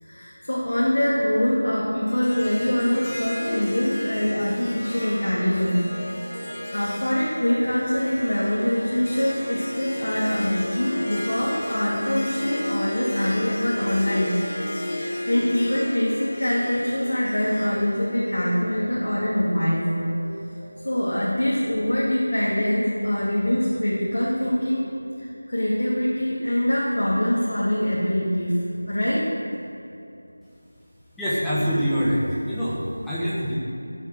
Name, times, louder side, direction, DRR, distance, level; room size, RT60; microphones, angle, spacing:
voice 1, 0.0-5.8 6.7-14.4 14.8-20.1 20.8-24.9 25.2-28.6 28.9-29.3, left 1 dB, 65° left, -6 dB, 2.5 m, -24 dB
Harp, 2.1-19.3, left 1 dB, 20° left, 1.8 m, -33 dB
sound 1, 5.3-21.9, right 1 dB, 60° right, 1.6 m, -42 dB
voice 2, 31.2-33.6, equal, ahead, -12 dB, 1.0 m, -25 dB
13.5 x 7.5 x 6.3 m, 2.8 s
figure-of-eight pair, 175°, 0 cm